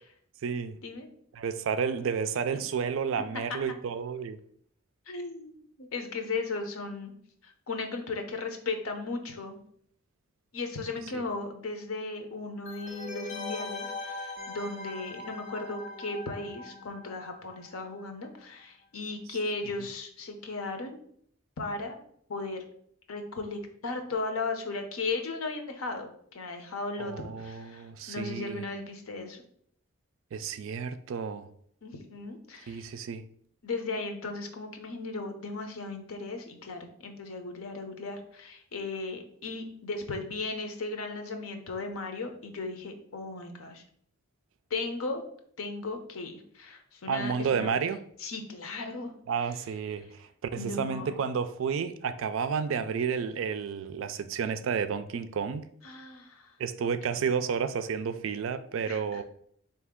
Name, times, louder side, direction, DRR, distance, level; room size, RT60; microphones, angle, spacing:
voice 1, 0.4-0.8 1.3-4.4 11.1-11.2 27.0-28.6 30.3-31.5 32.7-33.3 47.1-48.0 49.3-55.7 56.6-59.2, right 6 dB, 70° right, 0.3 m, -31 dB
voice 2, 3.3-3.7 5.1-7.1 7.4-9.6 10.5-21.0 21.6-22.0 22.3-22.6 23.1-29.4 31.8-32.9 33.6-43.8 44.7-45.2 45.6-47.8 48.2-49.2 50.6-51.2 55.8-56.6 57.1-57.4 58.9-59.2, left 3 dB, 85° left, 0.7 m, -36 dB
sound 1, 12.7-18.1 18.4-18.5, left 3 dB, 35° left, 0.6 m, -41 dB
4.1 x 2.8 x 3.6 m
head